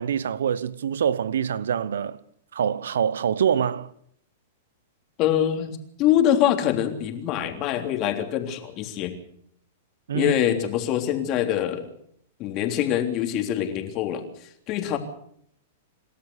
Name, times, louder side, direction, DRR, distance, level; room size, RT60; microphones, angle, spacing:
voice 1, 0.0-2.2 2.5-3.9 10.1-10.3, right 8 dB, 80° right, 0.9 m, -25 dB
voice 2, 5.2-9.1 10.1-11.9 12.4-15.0, left 11 dB, 40° left, 3.4 m, -24 dB
27.5 x 13.0 x 8.2 m
hypercardioid pair, 115°, 0 cm